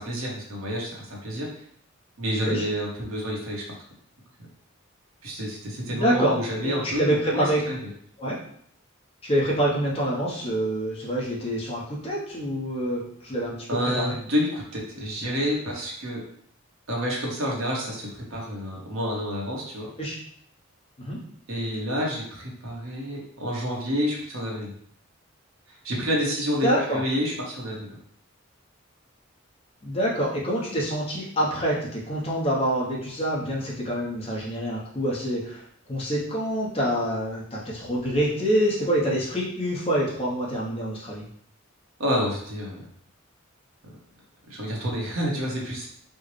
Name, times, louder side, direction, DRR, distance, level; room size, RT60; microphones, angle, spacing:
voice 1, 0.0-1.5 2.2-3.6 5.2-7.8 13.7-16.2 16.9-19.9 21.5-24.7 25.7-28.0 42.0-42.8 43.8-43.9 44.5-45.8, equal, 80° right, -3 dB, 1.0 m, -29 dB
voice 2, 5.9-7.7 8.2-8.4 9.2-14.2 20.0-20.2 21.0-21.2 26.6-27.0 29.8-35.6 35.9-41.2, equal, 30° left, -4 dB, 0.8 m, -26 dB
4.4 x 2.1 x 3.1 m, 0.65 s
head